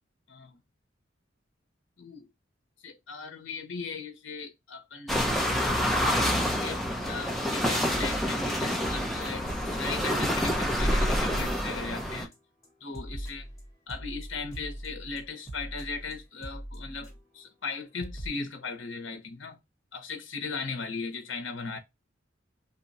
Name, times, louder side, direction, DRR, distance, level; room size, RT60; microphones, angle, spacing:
voice 1, 0.3-0.6 2.0-2.3 2.8-5.7 6.5-9.5 9.7-12.3 12.8-13.5 13.9-19.6 19.9-21.8, left 4 dB, 75° left, 0.7 m, -38 dB
sound 1, 5.1-12.3, equal, ahead, 0.6 m, -27 dB
sound 2, 7.9-8.6 8.8-12.3 12.6-17.4 17.7-17.8 18.0-18.3, right 1 dB, 15° left, 1.2 m, -41 dB
2.8 x 2.2 x 4.0 m
head